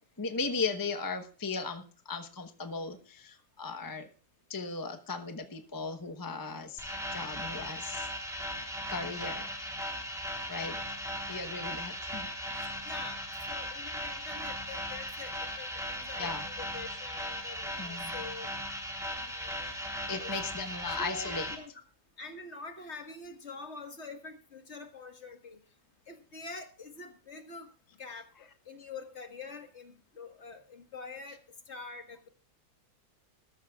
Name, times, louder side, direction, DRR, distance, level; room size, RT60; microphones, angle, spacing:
voice 1, 0.2-4.1 4.5-6.8 7.1-8.1 8.9-9.5 10.5-10.8 11.3-12.8 16.2-16.5 17.8-18.1 20.1-21.5, left 4 dB, 15° left, 6 dB, 1.0 m, -37 dB
sound 1, 6.8-21.6, equal, ahead, 3.5 m, -38 dB
voice 2, 12.9-18.5 19.1-19.7 20.2-20.3 21.0-21.7 22.2-25.6 26.1-27.7 28.0-31.4 31.7-32.3, left 3 dB, 45° left, 6 dB, 1.8 m, -46 dB
20.5 x 13.5 x 2.4 m, 0.37 s
omnidirectional pair, 1.7 m